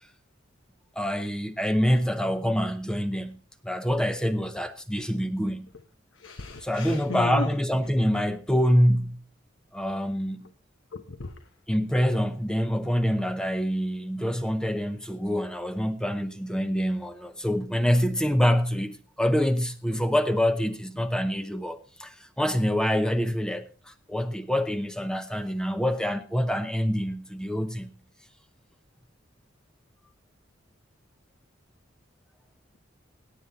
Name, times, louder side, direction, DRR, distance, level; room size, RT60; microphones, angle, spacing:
voice 1, 1.0-3.4 3.6-5.7 6.6-9.2 9.7-10.5 11.7-27.9, equal, 5° left, 0.7 m, -26 dB
voice 2, 6.2-7.5 10.9-11.3, left 2 dB, 75° left, 1.1 m, -36 dB
17.0 x 8.4 x 4.0 m
head